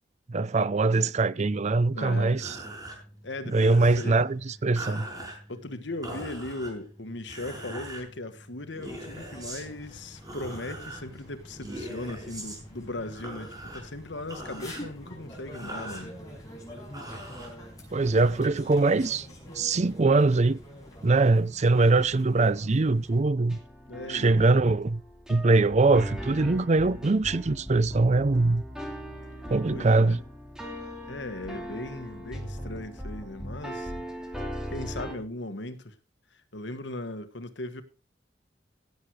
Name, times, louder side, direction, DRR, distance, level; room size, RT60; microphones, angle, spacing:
voice 1, 0.3-2.6 3.5-5.0 17.9-19.3 19.6-20.6 21.0-23.6 24.1-25.0 25.3-28.6 29.5-30.2, right 3 dB, 40° right, 0.5 m, -22 dB
voice 2, 1.9-2.4 3.2-4.2 5.5-16.1 23.9-24.5 29.7-30.2 31.1-33.9 34.7-35.9 36.3-37.8, left 2 dB, 75° left, 1.5 m, -38 dB
sound 1, 2.3-18.2, right 1 dB, 20° right, 6.0 m, -43 dB
sound 2, 8.8-23.2, equal, 20° left, 5.6 m, -46 dB
sound 3, 23.5-35.1, equal, 5° right, 2.8 m, -39 dB
16.5 x 7.9 x 4.8 m
head